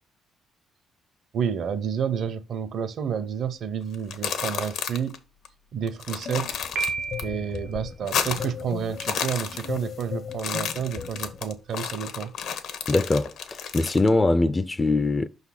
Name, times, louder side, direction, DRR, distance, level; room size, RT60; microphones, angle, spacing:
voice 1, 1.3-5.2 5.7-6.6 7.2-12.3, right 7 dB, 65° right, 0.7 m, -30 dB
sound 1, 3.9-5.2 5.5-5.6 5.9-7.2 7.6-8.6 8.9-10.0 10.3-14.1, left 7 dB, 80° left, 1.0 m, -31 dB
sound 2, 6.3-11.4, left 7 dB, 55° left, 0.7 m, -37 dB
Piano, 6.8-7.7, right 4 dB, 85° right, 1.7 m, -31 dB
voice 2, 12.9-13.3 13.7-15.3, left 2 dB, 20° left, 0.3 m, -21 dB
5.6 x 4.0 x 5.8 m
cardioid pair, 90°, 0 cm